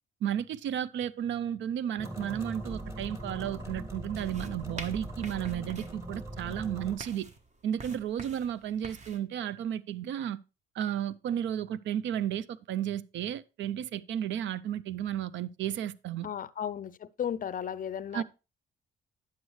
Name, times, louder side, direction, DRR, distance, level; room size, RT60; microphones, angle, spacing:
voice 1, 0.2-7.3 7.6-10.4 10.8-16.3 18.1-18.2, right 10 dB, 70° right, 0.5 m, -33 dB
sound 1, 2.0-7.0, right 1 dB, 15° right, 1.8 m, -40 dB
sound 2, 4.2-9.2, right 3 dB, 35° right, 1.2 m, -46 dB
voice 2, 16.2-18.2, left 9 dB, 45° left, 0.5 m, -35 dB
9.4 x 7.8 x 3.2 m
cardioid pair, 90°, 20 cm